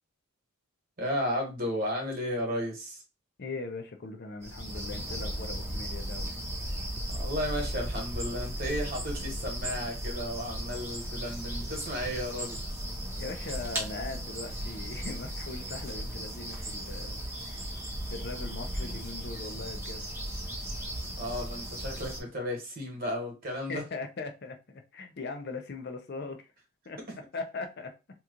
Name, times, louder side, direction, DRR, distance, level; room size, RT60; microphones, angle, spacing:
voice 1, 1.0-3.0 7.1-12.6 21.2-23.8, equal, 40° right, 1.2 m, -34 dB
voice 2, 3.4-6.3 13.2-17.3 18.1-20.1 23.7-26.5 26.9-27.0 27.3-27.9, left 3 dB, 50° left, 0.5 m, -40 dB
sound 1, 4.4-22.2, equal, 10° right, 0.7 m, -36 dB
2.9 x 2.3 x 3.7 m
head